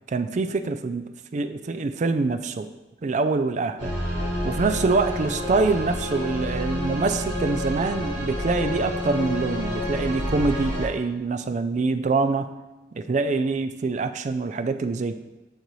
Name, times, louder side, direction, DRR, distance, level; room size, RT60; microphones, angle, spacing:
voice 1, 0.1-2.7 3.0-3.9 4.4-12.5 12.9-15.2, right 3 dB, 40° right, 10 dB, 0.3 m, -25 dB
sound 1, 3.8-10.9, equal, 75° right, 2.3 m, -29 dB
6.7 x 6.6 x 3.1 m, 1.1 s
head